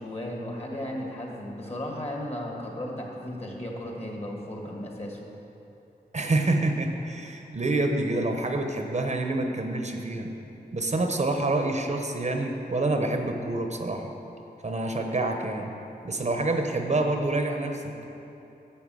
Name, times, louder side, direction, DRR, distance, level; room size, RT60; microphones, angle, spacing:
voice 1, 0.0-5.2, left 1 dB, 35° left, 0 dB, 1.8 m, -35 dB
voice 2, 6.1-10.3 10.7-14.1 14.6-15.7 16.0-18.0, right 2 dB, 45° right, 4 dB, 0.9 m, -27 dB
11.0 x 7.6 x 6.3 m, 3.0 s
wide cardioid pair, 105°, 17 cm